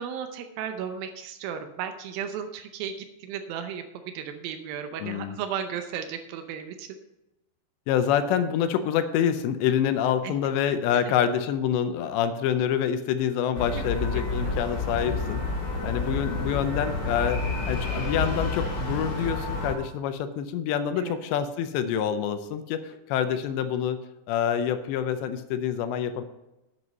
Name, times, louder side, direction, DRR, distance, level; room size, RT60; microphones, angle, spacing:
voice 1, 0.0-2.9 3.2-6.9 10.2-10.3 13.7-13.8 14.4-14.6 21.0-21.2, right 8 dB, 90° right, 7 dB, 2.0 m, -34 dB
voice 2, 5.0-5.4 7.9-15.4 15.8-24.0 24.3-26.2, left 9 dB, 80° left, 9 dB, 2.8 m, -26 dB
sound 1, 13.5-19.7, left 3 dB, 40° left, 1.7 m, -29 dB
11.0 x 8.0 x 5.3 m, 0.96 s
omnidirectional pair, 5.2 m